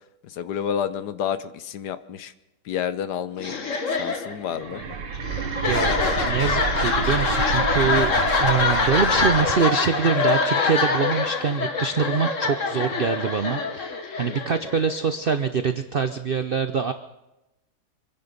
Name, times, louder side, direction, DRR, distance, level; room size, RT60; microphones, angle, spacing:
voice 1, 0.4-2.3 2.7-3.5 3.9-4.8 5.2-5.4 14.2-14.4, left 8 dB, 70° left, 13 dB, 1.3 m, -30 dB
sound 1, 3.4-15.1, left 4 dB, 50° left, 1.7 m, -24 dB
sound 2, 4.5-9.5, right 6 dB, 85° right, 1.7 m, -29 dB
voice 2, 5.7-6.0 6.3-16.9, right 6 dB, 65° right, 9 dB, 0.5 m, -24 dB
25.5 x 10.5 x 5.3 m, 0.93 s
omnidirectional pair, 1.9 m